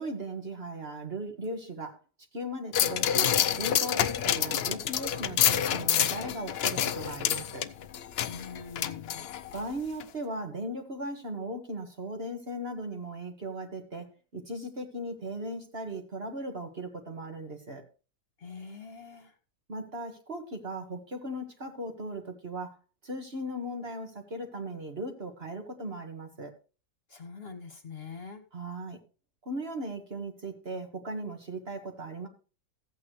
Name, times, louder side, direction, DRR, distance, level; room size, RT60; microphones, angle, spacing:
voice 1, 0.0-2.0 2.3-7.7 9.5-17.8 19.7-22.8 23.0-26.5 28.5-29.0 29.4-32.3, right 1 dB, 40° right, 4 dB, 1.8 m, -38 dB
sound 1, 2.7-9.6 10.0-10.1, left 10 dB, 65° left, 0.6 m, -28 dB
voice 2, 8.3-9.3 18.4-19.3 27.1-28.4, left 5 dB, 40° left, 6 dB, 1.6 m, -44 dB
15.0 x 8.5 x 3.1 m, 0.34 s
omnidirectional pair, 1.6 m